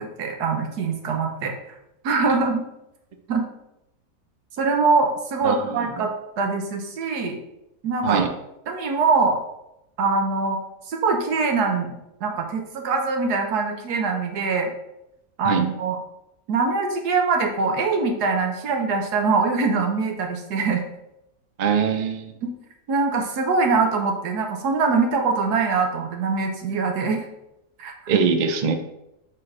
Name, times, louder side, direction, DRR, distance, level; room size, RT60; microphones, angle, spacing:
voice 1, 0.0-1.5 2.0-2.6 3.3-3.5 4.6-6.1 6.4-7.4 7.8-8.2 8.7-9.4 10.0-10.6 10.9-14.7 15.4-16.0 16.5-20.8 22.4-22.5 22.9-27.3 27.8-28.3, right 4 dB, 90° right, 3 dB, 1.5 m, -23 dB
voice 2, 5.4-6.0 8.0-8.3 15.4-15.6 21.6-22.4 28.1-28.7, right 6 dB, 70° right, 6 dB, 0.4 m, -23 dB
4.5 x 4.3 x 4.9 m, 0.85 s
omnidirectional pair, 1.6 m